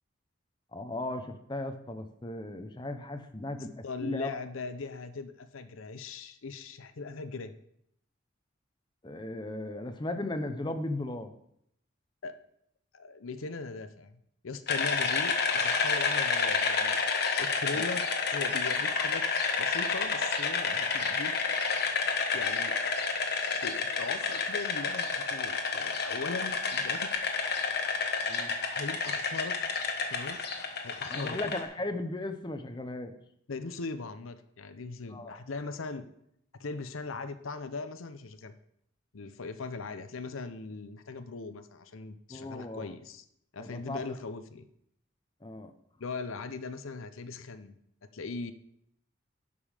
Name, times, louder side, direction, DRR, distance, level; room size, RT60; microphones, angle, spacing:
voice 1, 0.7-4.3 9.0-11.3 17.7-17.8 28.3-28.5 31.1-33.1 35.1-35.4 42.3-42.9 43.6-44.1 45.4-45.7, left 2 dB, 20° left, 8 dB, 0.7 m, -36 dB
voice 2, 3.8-7.5 12.2-12.4 12.9-14.2 14.4-17.0 17.4-18.0 18.3-19.2 19.6-21.3 22.3-22.7 23.6-27.3 28.7-29.6 30.1-30.4 30.8-31.4 33.5-36.1 36.5-38.5 39.1-43.2 43.5-44.7 46.0-47.8 48.1-48.5, left 4 dB, 90° left, 10 dB, 0.7 m, -39 dB
sound 1, 14.7-31.6, left 4 dB, 55° left, 1.3 m, -30 dB
11.5 x 5.4 x 5.0 m, 0.73 s
head